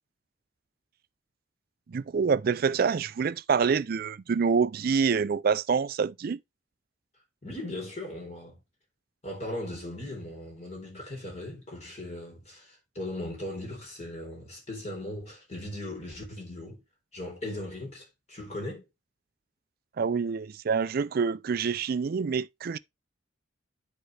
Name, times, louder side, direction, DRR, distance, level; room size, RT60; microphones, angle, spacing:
voice 1, 1.9-6.4 20.0-22.8, right 5 dB, 50° right, 0.4 m, -26 dB
voice 2, 7.4-8.6 9.2-16.8 17.1-18.8, left 1 dB, 35° left, 3.9 m, -38 dB
10.0 x 4.6 x 3.3 m
head